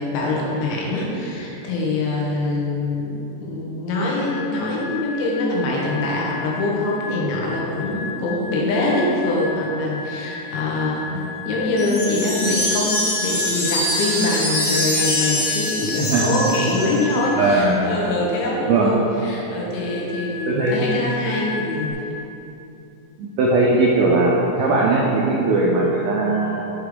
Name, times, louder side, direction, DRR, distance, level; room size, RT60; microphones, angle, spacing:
voice 1, 0.0-3.2 3.4-19.0 19.2-22.0, left 2 dB, 85° left, -4 dB, 3.6 m, -24 dB
sound 1, 4.1-17.8 19.7-21.9, left 5 dB, 60° right, 2.0 m, -33 dB
sound 2, 11.8-17.1, left 1 dB, 55° left, 2.5 m, -24 dB
voice 2, 16.0-16.4 17.4-17.9 18.7-19.0 20.5-20.8 23.2-26.7, right 2 dB, 90° right, -4 dB, 2.1 m, -19 dB
7.8 x 4.9 x 5.1 m, 2.9 s
omnidirectional pair, 5.3 m